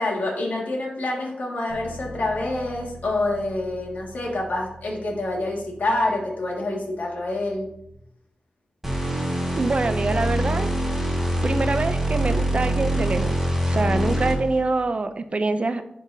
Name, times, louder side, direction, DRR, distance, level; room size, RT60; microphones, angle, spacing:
voice 1, 0.0-7.7, left 2 dB, 70° left, -2 dB, 1.8 m, -27 dB
Bass guitar, 1.7-7.9, equal, 85° right, 1.1 m, -44 dB
sound 1, 8.8-14.6, right 1 dB, 5° right, 1.9 m, -24 dB
voice 2, 9.6-10.7 11.4-13.3 13.6-15.8, right 3 dB, 45° right, 10 dB, 0.4 m, -25 dB
9.8 x 3.9 x 2.6 m, 0.77 s
wide cardioid pair, 70°, 3 cm